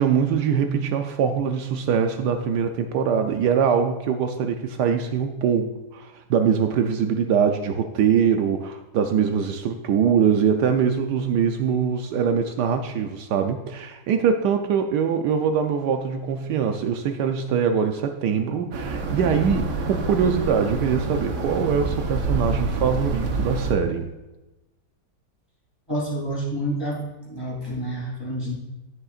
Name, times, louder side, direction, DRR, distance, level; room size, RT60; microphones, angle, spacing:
voice 1, 0.0-24.1, right 7 dB, 75° right, 6 dB, 1.2 m, -23 dB
sound 1, 18.7-23.7, right 3 dB, 60° right, 1.2 m, -27 dB
voice 2, 25.9-28.5, right 1 dB, 15° left, -5 dB, 2.9 m, -29 dB
10.5 x 9.9 x 2.4 m, 1.1 s
omnidirectional pair, 1.9 m